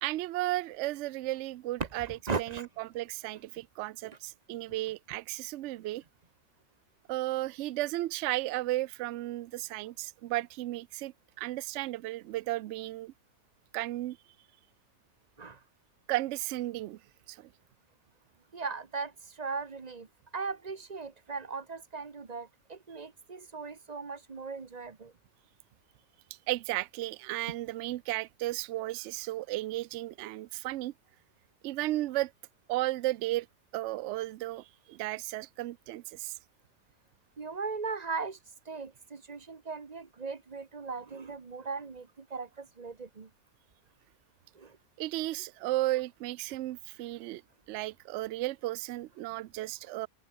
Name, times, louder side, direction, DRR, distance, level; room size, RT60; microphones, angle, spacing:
voice 1, 0.0-6.0 7.1-13.1 13.7-14.2 16.1-17.0 17.3-17.5 26.5-30.9 31.6-32.3 32.7-33.5 33.7-36.3 45.0-47.4 47.7-50.1, right 17 dB, 65° right, 0.7 m, -34 dB
voice 2, 2.0-2.7 15.4-15.6 18.5-20.1 20.3-25.1 37.4-38.4 38.7-43.3 44.5-44.8, right 4 dB, 30° right, 1.1 m, -38 dB
omnidirectional pair, 1.5 m